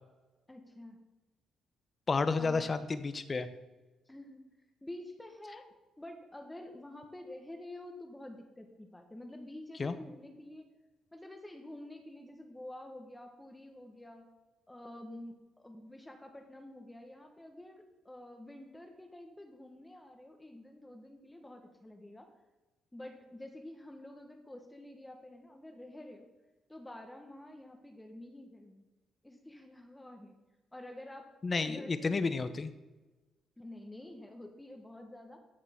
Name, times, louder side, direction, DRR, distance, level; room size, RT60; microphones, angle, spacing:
voice 1, 0.5-1.0 2.4-2.7 4.1-4.5 4.8-5.7 6.0-10.7 11.1-14.3 14.7-22.3 22.9-26.3 26.7-28.8 29.2-30.3 30.7-31.3 31.6-32.3 33.6-35.4, left 1 dB, 10° left, 4 dB, 1.2 m, -49 dB
voice 2, 2.1-3.5 9.8-9.9 31.4-32.7, left 4 dB, 35° left, 11 dB, 0.8 m, -31 dB
13.5 x 6.6 x 3.6 m, 1.2 s
cardioid pair, 90°, 0 cm